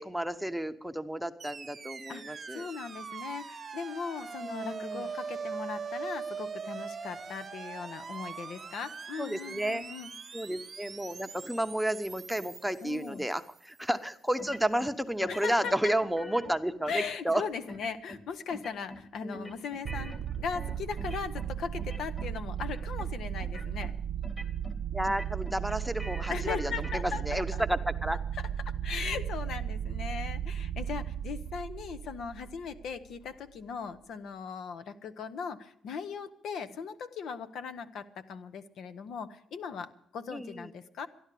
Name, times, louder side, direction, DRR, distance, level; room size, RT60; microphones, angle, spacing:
voice 1, 0.0-2.7 4.4-5.1 9.2-9.8 10.3-17.4 19.2-19.6 24.9-28.2 40.3-40.7, right 1 dB, ahead, 8 dB, 0.9 m, -32 dB
sound 1, 1.4-13.6, right 5 dB, 35° right, 0.9 m, -42 dB
voice 2, 2.1-10.1 12.8-13.3 15.3-15.9 16.9-23.9 26.3-27.4 28.6-41.1, left 6 dB, 70° left, 11 dB, 0.9 m, -38 dB
sound 2, 14.4-14.9 15.2-16.5 16.9-17.4 17.7-18.2 18.5-19.1 19.3-21.5 21.8-22.3 22.6-23.1 23.4-23.9 24.2-24.8 25.0-27.2, equal, 25° left, 2.1 m, -45 dB
sound 3, 19.8-33.2, right 9 dB, 70° right, 0.5 m, -35 dB
13.5 x 11.0 x 8.4 m, 0.69 s
cardioid pair, 90°, 0 cm